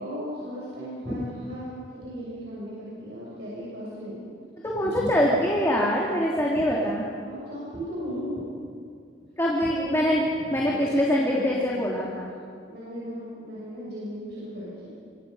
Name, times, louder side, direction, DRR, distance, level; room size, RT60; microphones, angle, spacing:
voice 1, 0.0-1.7 2.0-4.2 4.8-5.4 7.2-8.4 9.7-10.0 10.4-10.8 11.1-12.1 12.7-14.9, equal, 60° right, -7 dB, 6.8 m, -36 dB
voice 2, 4.6-7.1 9.4-10.2 10.5-12.3, equal, 15° left, -4 dB, 2.6 m, -24 dB
28.0 x 23.5 x 5.5 m, 2.2 s
head